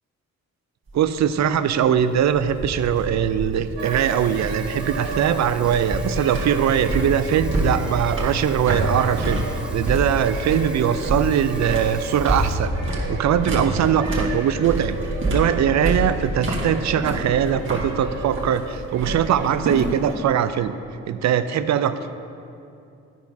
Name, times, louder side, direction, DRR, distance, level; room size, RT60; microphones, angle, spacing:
sound 1, 0.9-20.2, right 1 dB, 35° right, 2.1 m, -28 dB
voice 1, 0.9-9.4 9.7-12.8 13.1-15.0 15.2-20.7 21.1-21.9, right 9 dB, 50° right, 12 dB, 0.5 m, -21 dB
Water tap faucet / Sink (filling or washing), 3.8-12.6, right 1 dB, 5° right, 1.3 m, -45 dB
sound 2, 3.8-19.4, right 4 dB, 75° right, 1.1 m, -35 dB
12.0 x 4.6 x 5.4 m, 2.6 s
hypercardioid pair, 50°, 36 cm